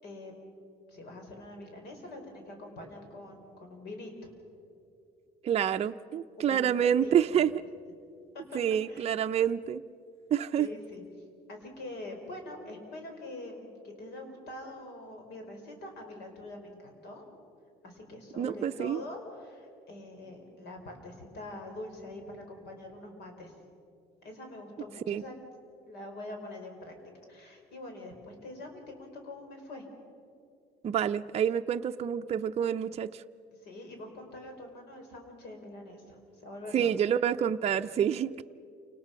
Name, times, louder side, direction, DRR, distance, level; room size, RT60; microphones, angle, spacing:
voice 1, 0.0-0.3 0.9-4.3 6.4-7.4 8.3-8.6 8.9-9.1 10.6-11.0 11.5-17.3 17.8-23.5 24.2-25.4 25.9-27.0 27.3-29.9 33.6-36.9, left 2 dB, 75° left, 4 dB, 4.7 m, -44 dB
voice 2, 5.4-7.6 8.5-9.8 10.3-10.7 18.4-19.0 25.1-25.2 30.8-33.2 36.7-38.4, right 9 dB, 40° right, 7 dB, 0.5 m, -28 dB
28.5 x 19.5 x 5.8 m, 2.5 s
cardioid pair, 110°, 17 cm